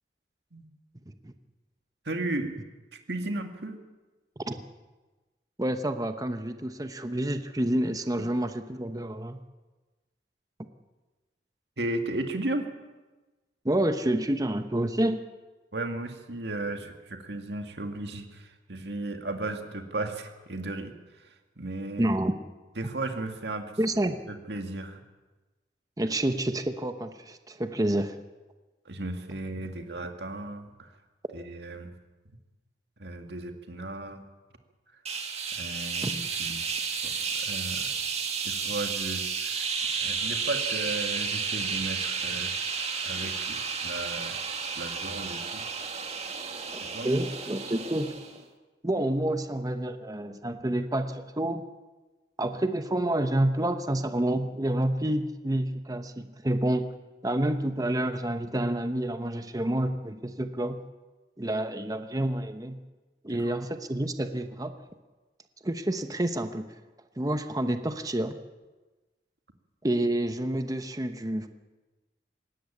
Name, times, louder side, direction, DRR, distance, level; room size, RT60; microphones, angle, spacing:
voice 1, 2.1-2.6 2.9-3.8 11.8-12.7 15.7-20.9 21.6-22.1 22.8-23.7 24.3-25.0 28.9-30.9 31.3-31.9 33.0-34.2 35.6-37.9 38.4-39.7 40.0-42.6 43.0-45.6 46.3-46.4 46.8-47.1 63.3-63.6, right 2 dB, 65° right, 5 dB, 2.2 m, -35 dB
voice 2, 5.6-9.4 13.6-15.2 22.0-22.4 23.8-24.2 26.0-28.2 36.0-36.1 46.7-48.2 48.8-51.6 52.4-56.9 57.2-60.8 61.4-62.8 63.2-64.8 65.6-66.6 67.2-68.4 69.8-71.5, right 1 dB, 20° right, 8 dB, 0.9 m, -28 dB
sound 1, 35.1-48.4, right 5 dB, 35° right, 2.0 m, -32 dB
20.0 x 17.0 x 8.6 m, 1.2 s
head